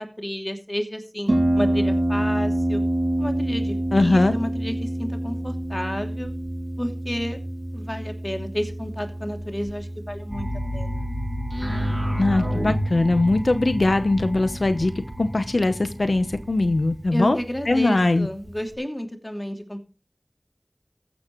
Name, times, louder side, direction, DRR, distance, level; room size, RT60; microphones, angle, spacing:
voice 1, 0.0-2.8 3.2-6.3 6.8-7.4 7.7-10.5 10.7-11.1 17.1-19.8, equal, 25° left, 2.8 m, -31 dB
Harp, 1.3-18.7, right 1 dB, 75° right, 2.3 m, -29 dB
voice 2, 3.9-4.3 12.2-14.9 15.2-17.4 17.7-18.3, left 2 dB, 85° left, 0.9 m, -21 dB
sound 1, 10.3-17.0, equal, 20° right, 6.4 m, -30 dB
14.5 x 11.5 x 3.1 m
wide cardioid pair, 40°, 0 cm